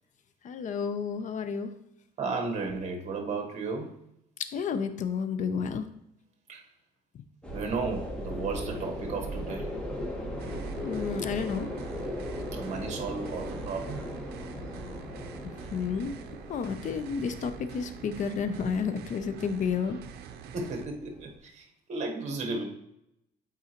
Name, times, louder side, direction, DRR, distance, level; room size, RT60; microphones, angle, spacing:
voice 1, 0.4-1.7 4.5-5.9 10.8-11.7 15.4-16.1 16.5-20.0, left 6 dB, 50° left, 10 dB, 0.6 m, -31 dB
voice 2, 2.2-4.0 6.5-6.7 7.5-9.7 12.5-14.0 20.5-22.6, right 3 dB, 45° right, 3 dB, 1.2 m, -34 dB
sound 1, 7.4-21.4, equal, 5° left, 1.3 m, -39 dB
sound 2, 10.4-20.9, right 8 dB, 70° right, 0.5 m, -46 dB
8.3 x 4.0 x 2.9 m, 0.80 s
cardioid pair, 110°, 17 cm